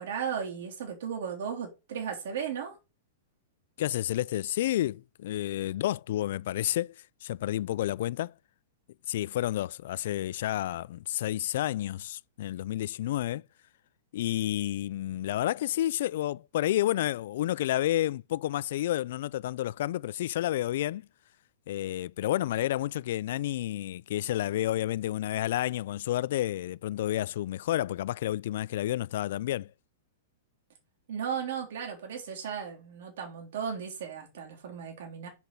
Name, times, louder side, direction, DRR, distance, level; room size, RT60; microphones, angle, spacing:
voice 1, 0.0-2.8 31.1-35.3, right 7 dB, 65° right, 3.6 m, -35 dB
voice 2, 3.8-6.9 7.2-8.3 9.1-13.4 14.1-21.0 21.7-29.7, left 13 dB, 60° left, 0.3 m, -30 dB
5.9 x 5.5 x 6.0 m
supercardioid pair, 155°, 0 cm